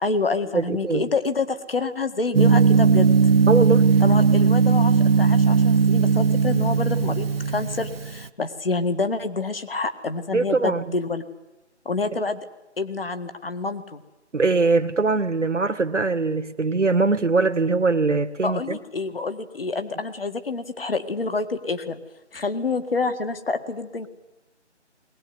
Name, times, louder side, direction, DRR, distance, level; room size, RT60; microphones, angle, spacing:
voice 1, 0.0-3.2 4.0-11.2 11.9-12.5 12.8-14.0 18.4-22.0 22.3-24.1, left 3 dB, 55° left, 9 dB, 2.0 m, -27 dB
voice 2, 0.5-1.0 3.5-3.9 10.3-10.8 14.3-18.8, right 3 dB, 90° right, 7 dB, 1.8 m, -22 dB
Gong, 2.3-8.2, right 5 dB, 55° right, 0.8 m, -18 dB
21.0 x 21.0 x 9.8 m, 1.0 s
figure-of-eight pair, 175°, 35 cm